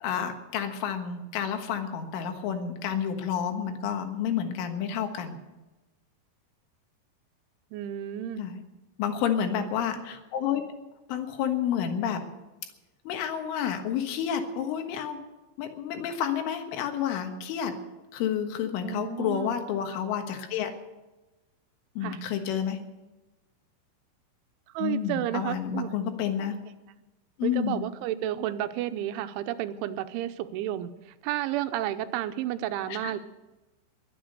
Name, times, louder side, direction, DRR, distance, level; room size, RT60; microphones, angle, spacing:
voice 1, 0.0-5.4 8.4-8.6 9.0-10.6 11.1-12.2 13.1-15.2 15.6-17.8 18.1-20.7 22.0-22.8 24.8-26.6 27.4-27.8 32.9-33.1, left 8 dB, 85° left, 6 dB, 3.9 m, -30 dB
voice 2, 7.7-8.4 18.8-19.5 22.0-22.2 24.7-25.9 27.4-33.2, right 12 dB, 85° right, 10 dB, 3.1 m, -31 dB
22.0 x 8.6 x 6.7 m, 1.1 s
omnidirectional pair, 5.4 m